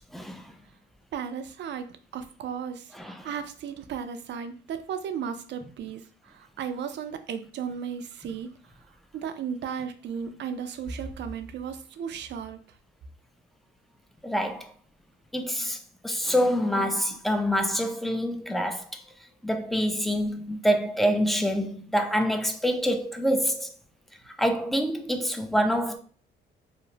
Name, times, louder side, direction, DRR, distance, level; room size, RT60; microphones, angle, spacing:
voice 1, 0.1-0.4 2.9-3.3 14.2-14.7 15.3-15.8 16.0-18.8 19.4-23.7 24.4-26.0, equal, ahead, 0.4 m, -26 dB
voice 2, 1.1-8.5 9.1-12.6, right 7 dB, 65° right, 0.4 m, -35 dB
2.9 x 2.0 x 2.7 m
cardioid pair, 90°, 20 cm